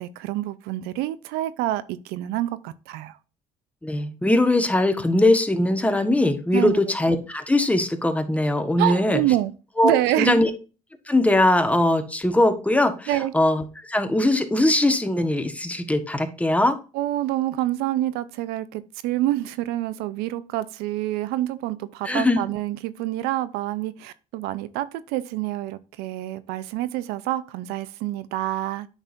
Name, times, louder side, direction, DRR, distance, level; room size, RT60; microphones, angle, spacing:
voice 1, 0.0-3.2 6.5-6.8 8.8-9.5 9.8-10.5 13.1-13.3 16.9-28.9, right 14 dB, 80° right, 0.6 m, -27 dB
voice 2, 3.8-9.2 9.8-10.5 11.1-16.7 22.0-22.4, left 1 dB, 10° left, 1.3 m, -21 dB
9.0 x 6.2 x 2.6 m
supercardioid pair, 85°, 16 cm